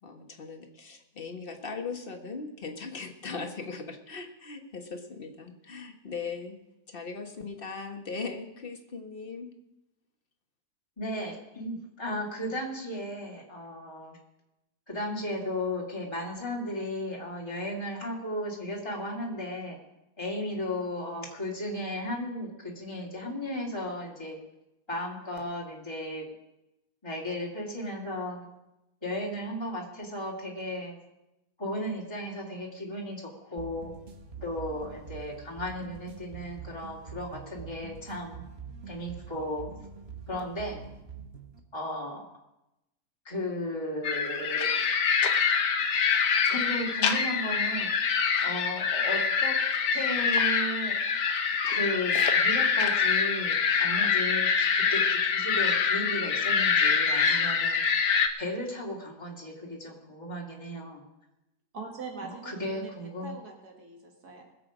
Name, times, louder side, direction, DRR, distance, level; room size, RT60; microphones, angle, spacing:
voice 1, 0.0-6.6 6.9-9.5, left 4 dB, 35° left, 3 dB, 1.6 m, -39 dB
voice 2, 11.0-14.2 14.9-19.8 20.2-24.4 24.9-26.3 27.0-28.5 29.0-31.0 31.6-33.9 34.4-38.4 38.9-39.7 40.3-40.8 41.7-42.3 43.2-44.8 46.5-47.9 48.4-49.5 49.9-51.0 51.7-57.8 58.4-61.0 62.1-63.3, left 1 dB, 15° left, -3 dB, 2.6 m, -35 dB
sound 1, 33.6-41.6, right 6 dB, 45° right, 1.2 m, -45 dB
sound 2, 44.0-58.3, left 6 dB, 65° left, 1.4 m, -25 dB
voice 3, 61.7-64.4, right 4 dB, 70° right, 1 dB, 2.3 m, -43 dB
21.0 x 7.8 x 5.1 m, 0.92 s
omnidirectional pair, 1.8 m